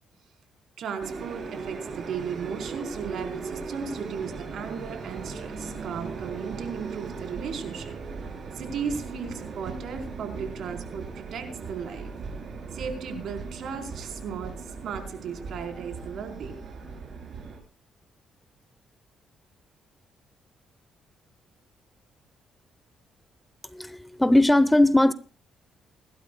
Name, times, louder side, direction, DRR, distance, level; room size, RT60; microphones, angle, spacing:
voice 1, 0.8-7.9 8.5-12.1 12.7-16.6, right 6 dB, 70° right, 4.2 m, -36 dB
sound 1, 1.0-17.6, right 4 dB, 50° right, 4.3 m, -38 dB
voice 2, 23.7-25.1, left 1 dB, 10° left, 0.9 m, -19 dB
29.5 x 12.0 x 2.3 m
cardioid pair, 90°, 0 cm